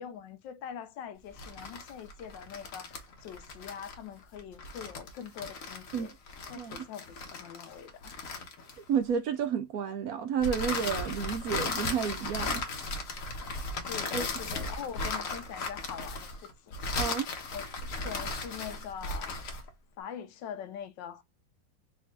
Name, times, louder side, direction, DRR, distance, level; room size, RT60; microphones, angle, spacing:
voice 1, 0.0-6.1 6.5-8.3 13.7-16.8 17.5-19.3 20.0-21.2, left 8 dB, 90° left, 1.4 m, -43 dB
sound 1, 1.3-9.1 10.4-19.7, left 3 dB, 55° left, 1.2 m, -36 dB
voice 2, 8.9-12.6 14.1-14.6 17.0-17.3, right 7 dB, 65° right, 1.0 m, -31 dB
4.2 x 2.7 x 3.3 m
omnidirectional pair, 1.9 m